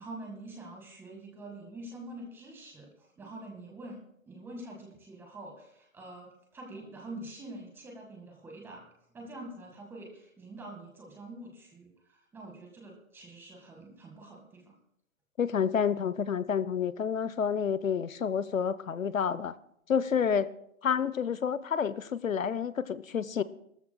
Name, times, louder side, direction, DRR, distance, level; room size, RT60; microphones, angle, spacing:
voice 1, 0.0-8.9 9.1-14.8, right 1 dB, 5° right, 1 dB, 1.7 m, -46 dB
voice 2, 15.4-19.5 19.9-20.5 20.8-23.4, left 7 dB, 75° left, 16 dB, 0.9 m, -29 dB
18.5 x 13.5 x 2.3 m, 0.71 s
hypercardioid pair, 150°, 41 cm